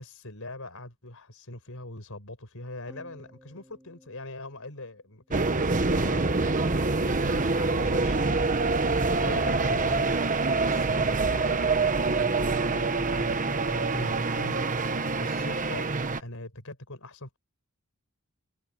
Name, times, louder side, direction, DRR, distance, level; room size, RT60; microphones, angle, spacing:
voice 1, 0.0-6.7 7.0-10.2 10.5-11.6 12.0-14.9 15.2-15.9 16.2-17.4, left 2 dB, 65° left, 6.3 m, -42 dB
sound 1, 2.9-5.5, equal, 10° right, 5.0 m, -56 dB
sound 2, 5.3-16.2, right 3 dB, 35° right, 1.1 m, -26 dB
head